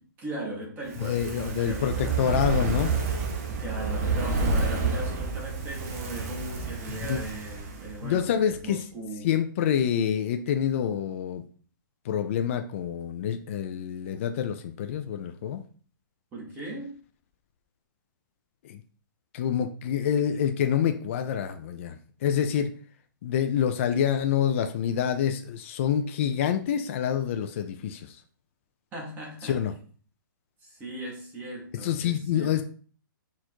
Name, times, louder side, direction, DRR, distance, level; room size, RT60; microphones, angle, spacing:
voice 1, 0.2-2.3 3.5-9.3 16.3-16.9 28.9-29.6 30.6-32.6, right 2 dB, 15° right, -2 dB, 1.1 m, -38 dB
Fire, 0.8-8.2 8.5-8.6, right 3 dB, 40° right, 0.9 m, -29 dB
voice 2, 1.0-2.9 6.9-7.2 8.0-8.8 9.2-11.4 12.0-15.6 18.6-18.8 19.3-22.7 23.2-28.2 29.4-29.7 31.8-32.6, left 9 dB, 35° left, 7 dB, 0.4 m, -27 dB
4.3 x 2.5 x 4.4 m, 0.43 s
hypercardioid pair, 160°, 11 cm